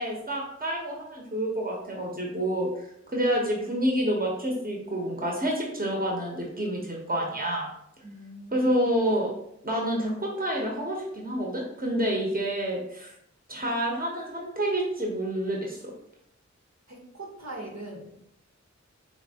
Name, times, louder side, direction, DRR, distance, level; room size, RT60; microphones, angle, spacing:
voice 1, 0.0-2.7 3.1-7.7 8.5-9.3 9.6-13.1 13.5-15.9, right 1 dB, 30° right, -1 dB, 1.0 m, -28 dB
voice 2, 8.0-8.9 16.9-18.2, right 1 dB, 65° right, -2 dB, 1.2 m, -41 dB
4.1 x 2.9 x 2.8 m, 0.74 s
wide cardioid pair, 40°, 29 cm